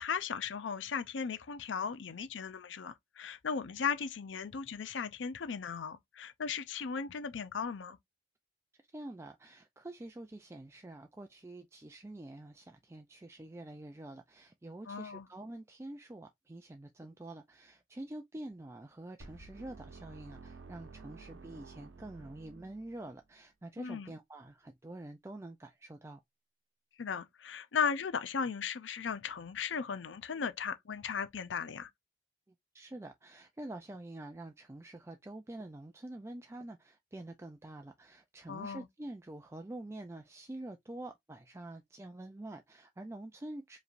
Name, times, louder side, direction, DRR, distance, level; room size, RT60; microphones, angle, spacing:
voice 1, 0.0-8.0 14.9-15.3 23.8-24.1 27.0-31.9 38.5-38.9, left 6 dB, 80° left, 0.5 m, -36 dB
voice 2, 8.9-26.2 32.7-43.8, right 1 dB, 15° right, 0.4 m, -47 dB
sound 1, 19.2-23.2, right 3 dB, 80° right, 0.9 m, -52 dB
5.0 x 3.2 x 2.5 m
head